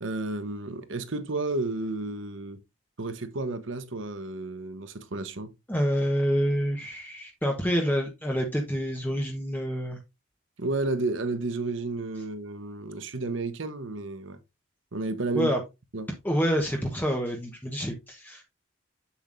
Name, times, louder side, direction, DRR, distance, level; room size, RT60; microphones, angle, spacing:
voice 1, 0.0-2.6 3.0-5.5 10.6-14.4 14.9-15.5 15.9-16.1, right 2 dB, 65° right, 1.0 m, -32 dB
voice 2, 5.7-10.0 15.3-15.6 16.2-18.5, equal, 10° left, 1.0 m, -27 dB
8.1 x 7.2 x 2.6 m
head